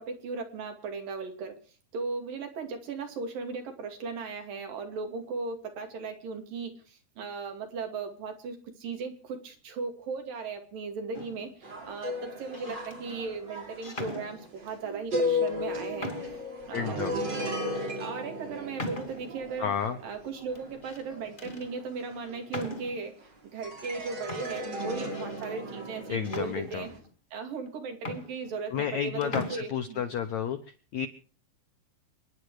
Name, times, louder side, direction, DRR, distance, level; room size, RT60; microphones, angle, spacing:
voice 1, 0.0-1.6 1.9-16.1 16.7-17.1 17.9-19.7 20.0-23.2 23.5-26.9 27.3-30.0, right 4 dB, 60° right, 5 dB, 4.1 m, -37 dB
sound 1, 11.1-11.6 12.4-13.0 13.8-14.8 15.5-15.6 16.0-16.5 17.0-17.1 17.7-17.9 18.8-19.4 20.5-21.0 21.4-21.7 22.5-23.1 23.9-24.0 24.3-25.5 26.2-27.1 27.7-27.8 28.0-29.0 29.2-29.6, left 2 dB, 20° left, 1.2 m, -40 dB
sound 2, 11.6-23.2 23.6-27.0, left 2 dB, 30° right, 3.5 m, -35 dB
voice 2, 16.7-17.2 19.6-20.0 26.1-26.9 28.7-30.6 30.9-31.1, left 8 dB, 70° left, 8 dB, 1.7 m, -31 dB
28.5 x 10.5 x 4.8 m, 0.39 s
omnidirectional pair, 4.5 m